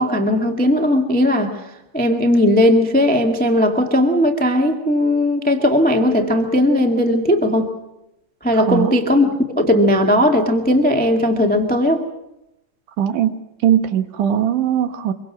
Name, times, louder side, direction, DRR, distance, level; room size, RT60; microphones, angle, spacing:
voice 1, 0.0-1.6 1.9-7.7 8.4-12.0, left 1 dB, 5° left, 4 dB, 0.7 m, -17 dB
voice 2, 8.5-8.9 13.0-13.4 13.6-15.1, right 10 dB, 70° right, 10 dB, 2.5 m, -19 dB
25.5 x 23.5 x 6.2 m, 0.89 s
omnidirectional pair, 3.9 m